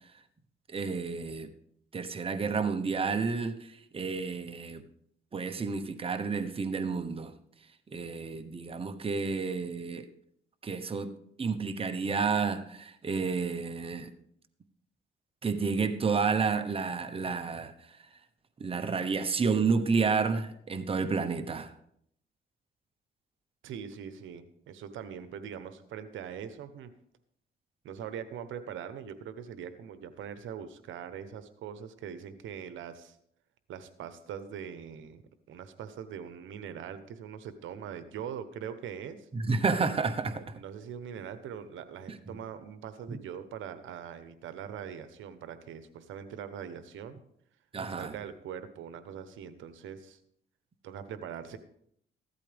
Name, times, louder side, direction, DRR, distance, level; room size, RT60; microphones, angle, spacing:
voice 1, 0.7-1.5 1.9-4.8 5.3-7.3 7.9-10.1 10.6-11.1 11.4-14.1 15.4-17.7 18.6-21.7 39.3-40.6 42.3-42.4 43.1-43.2 47.7-48.2, right 5 dB, 30° right, 1.0 m, -30 dB
voice 2, 23.6-26.9 27.8-33.2 33.7-35.2 35.5-39.3 40.3-47.2 48.0-50.2 50.8-51.6, right 8 dB, 80° right, 1.0 m, -42 dB
15.0 x 12.5 x 3.5 m
cardioid pair, 90°, 20 cm